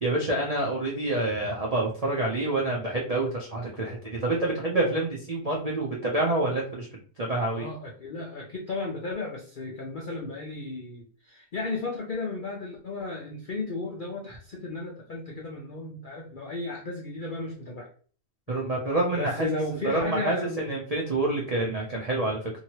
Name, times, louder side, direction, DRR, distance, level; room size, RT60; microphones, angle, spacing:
voice 1, 0.0-6.9 7.2-7.6 18.5-19.5 19.8-22.5, right 2 dB, 70° right, -2 dB, 0.3 m, -27 dB
voice 2, 7.5-17.9 19.1-20.8, left 3 dB, 85° left, -1 dB, 0.4 m, -34 dB
2.9 x 2.8 x 2.8 m, 0.43 s
omnidirectional pair, 1.7 m